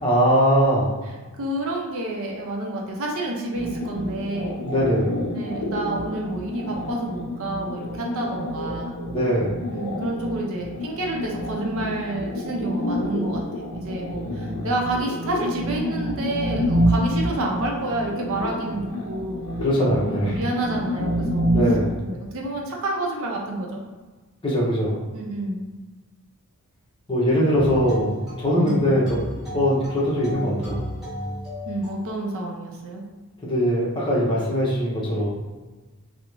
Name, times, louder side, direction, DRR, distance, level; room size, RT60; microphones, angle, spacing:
voice 1, 0.0-1.1 4.6-5.2 9.1-9.7 14.2-14.7 19.6-20.4 21.5-22.0 24.4-25.1 27.1-29.2 29.5-30.9 33.4-35.3, equal, 25° left, -5 dB, 0.6 m, -22 dB
voice 2, 1.4-4.6 5.3-9.0 9.7-19.5 20.0-21.5 22.0-23.8 25.1-25.7 28.6-28.9 31.6-33.0, right 2 dB, 65° right, 0 dB, 0.5 m, -29 dB
sound 1, 3.5-21.9, equal, 90° left, 0.5 m, -28 dB
sound 2, 27.5-32.4, equal, ahead, 1.1 m, -34 dB
2.4 x 2.0 x 2.9 m, 1.3 s
head